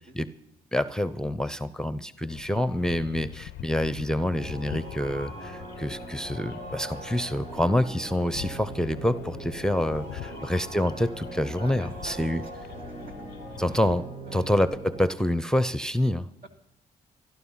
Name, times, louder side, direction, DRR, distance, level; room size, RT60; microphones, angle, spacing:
voice 1, 0.7-12.4 13.6-14.1 14.3-16.3, left 1 dB, 5° left, 15 dB, 0.7 m, -27 dB
sound 1, 2.3-14.0, left 15 dB, 80° left, 0.4 m, -44 dB
sound 2, 4.3-15.0, right 2 dB, 80° right, 3.8 m, -41 dB
voice 2, 11.6-12.3 13.0-13.1 13.7-13.8 14.3-14.6 16.4-16.5, right 3 dB, 60° right, 5 dB, 2.5 m, -45 dB
14.0 x 12.0 x 5.7 m, 0.77 s
supercardioid pair, 55°, 17 cm